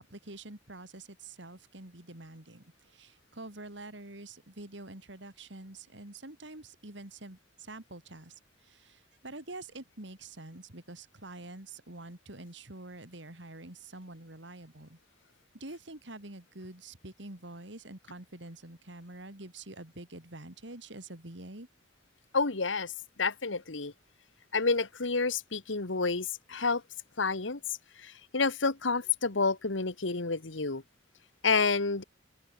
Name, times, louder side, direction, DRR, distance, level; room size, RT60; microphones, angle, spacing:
voice 1, 0.0-8.3 8.6-15.0 15.6-21.7, right 2 dB, 70° right, 3.8 m, -46 dB
voice 2, 22.3-22.9 23.2-23.9 24.5-26.8 27.2-30.8 31.4-32.0, left 4 dB, 85° left, 1.7 m, -29 dB
open air
head